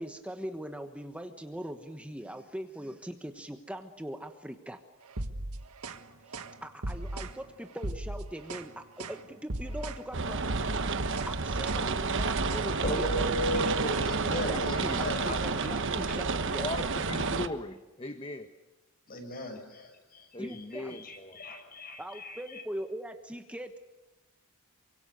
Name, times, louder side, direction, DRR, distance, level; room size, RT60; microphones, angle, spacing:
voice 1, 0.0-4.8 6.2-13.8 14.2-16.7 20.4-21.0 22.0-23.8, equal, 5° right, 6 dB, 1.2 m, -41 dB
sound 1, 5.1-6.0 6.3-6.6 6.8-7.4 7.8-8.7 9.0-9.2 9.5-10.0 10.3-13.6, right 1 dB, 85° right, 1.7 m, -36 dB
sound 2, 10.1-17.5, right 4 dB, 60° right, 1.2 m, -30 dB
voice 2, 12.8-16.2 19.1-20.3 20.9-22.4, equal, 40° left, 5 dB, 5.9 m, -36 dB
voice 3, 14.4-15.0 16.6-18.5 20.3-21.4, left 2 dB, 25° left, 7 dB, 1.2 m, -38 dB
28.0 x 25.0 x 6.8 m, 1.1 s
head